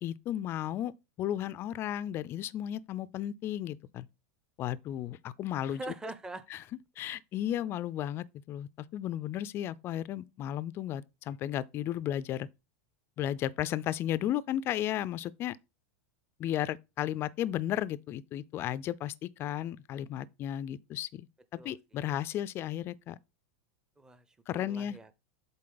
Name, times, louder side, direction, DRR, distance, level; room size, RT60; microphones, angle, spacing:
voice 1, 0.0-4.1 4.6-5.8 6.5-6.6 7.0-12.5 13.2-15.6 16.4-21.3 21.6-23.2 24.5-25.0, left 11 dB, 30° left, 0.4 m, -34 dB
voice 2, 5.7-6.5 21.6-22.2 24.0-25.1, right 2 dB, 10° right, 0.6 m, -44 dB
7.6 x 4.1 x 3.9 m
supercardioid pair, 140°, 7 cm